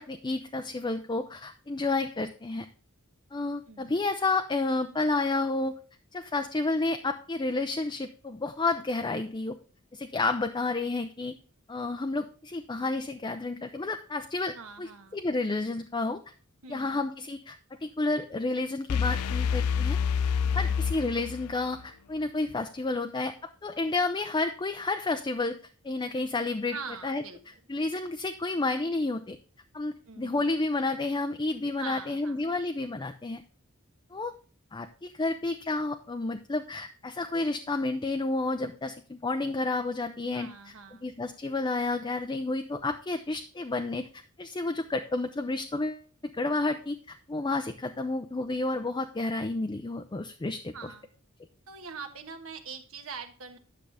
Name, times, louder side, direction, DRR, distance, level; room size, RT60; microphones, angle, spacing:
voice 1, 0.0-2.7 3.3-5.7 6.1-9.6 9.9-11.4 11.7-14.9 15.1-16.2 16.7-17.6 17.8-20.0 20.5-25.6 25.8-26.7 27.0-27.2 27.7-29.4 29.7-33.4 34.1-34.3 34.7-40.5 41.0-44.1 44.4-46.0 46.3-50.9, left 3 dB, 20° left, 6 dB, 0.5 m, -30 dB
voice 2, 3.7-4.0 14.5-15.2 16.6-17.1 20.4-20.9 26.7-27.4 30.1-30.5 31.8-32.4 40.3-41.1 50.7-51.1 51.7-53.6, right 5 dB, 70° right, 7 dB, 1.3 m, -43 dB
sound 1, 18.9-21.8, left 6 dB, 90° left, 0.4 m, -27 dB
10.0 x 6.4 x 3.4 m, 0.41 s
head